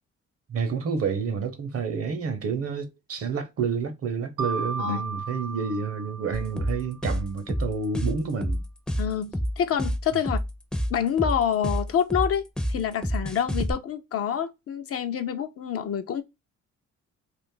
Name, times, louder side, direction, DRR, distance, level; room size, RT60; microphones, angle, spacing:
voice 1, 0.5-8.6, right 5 dB, 50° right, 0.8 m, -29 dB
Mallet percussion, 4.4-7.2, right 4 dB, 85° right, 0.8 m, -35 dB
sound 1, 6.3-13.7, equal, 5° left, 0.5 m, -28 dB
voice 2, 9.0-10.4 10.9-16.2, left 8 dB, 50° left, 0.5 m, -27 dB
2.5 x 2.4 x 3.7 m
cardioid pair, 90°, 30 cm